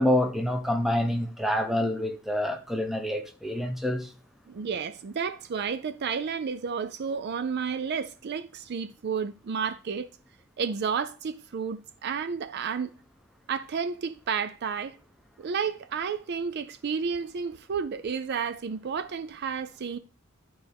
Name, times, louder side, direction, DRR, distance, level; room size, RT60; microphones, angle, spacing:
voice 1, 0.0-4.1, left 1 dB, ahead, 0.8 m, -27 dB
voice 2, 4.5-10.1 10.6-12.9 13.5-14.9 15.4-20.0, right 6 dB, 55° right, 0.4 m, -31 dB
11.5 x 4.5 x 3.5 m
head